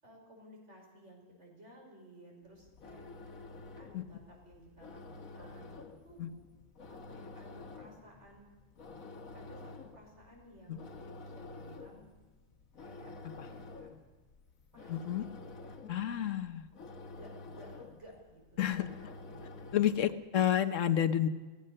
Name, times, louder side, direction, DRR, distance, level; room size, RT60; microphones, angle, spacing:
voice 1, 0.0-3.0 3.8-6.4 6.9-8.4 9.3-12.1 12.8-13.1 13.4-13.9 14.7-15.8 17.1-18.9 19.2-19.9, right 1 dB, 60° right, 0 dB, 5.9 m, -56 dB
sound 1, 2.5-20.1, left 3 dB, 90° left, 2.0 m, -50 dB
voice 2, 14.9-15.2 15.9-16.7 18.6-18.9 19.7-21.3, left 10 dB, 70° left, 12 dB, 1.4 m, -30 dB
23.0 x 17.5 x 6.6 m, 1.3 s
omnidirectional pair, 1.4 m